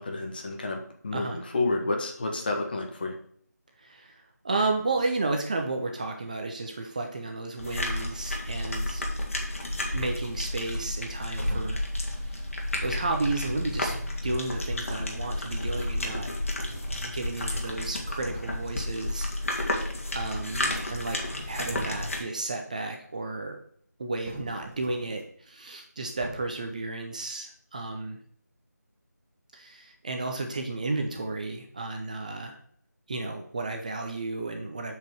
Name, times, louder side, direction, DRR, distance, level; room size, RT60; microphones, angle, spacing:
voice 1, 0.0-3.1, left 2 dB, 30° left, 2 dB, 1.4 m, -30 dB
voice 2, 3.8-9.0 9.9-11.8 12.1-12.5 12.8-14.0 14.2-16.3 17.0-19.6 20.1-21.2 21.5-23.6 24.0-28.2 29.5-32.6 33.1-35.0, right 3 dB, 25° right, 3 dB, 0.8 m, -33 dB
sound 1, 7.6-22.2, left 1 dB, 50° left, 2.2 m, -31 dB
sound 2, 11.4-12.0 13.6-14.3 15.5-15.6 16.0-17.2 17.8-17.9 18.2-18.7 20.3-20.9 21.2-22.3 24.2-25.2 26.2-26.7, right 1 dB, 40° right, 1.7 m, -42 dB
7.7 x 5.1 x 6.3 m, 0.62 s
figure-of-eight pair, 165°, 10 cm